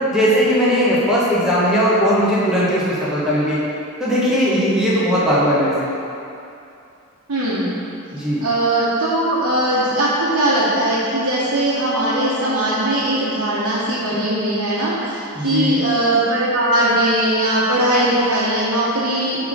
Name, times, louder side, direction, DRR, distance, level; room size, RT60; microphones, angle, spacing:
voice 1, 0.1-3.6 4.0-5.9 8.1-8.4 15.4-15.8, equal, ahead, -9 dB, 1.1 m, -18 dB
voice 2, 7.3-7.7 8.4-19.5, right 1 dB, 75° right, -10 dB, 1.1 m, -19 dB
5.8 x 3.8 x 6.1 m, 2.6 s
head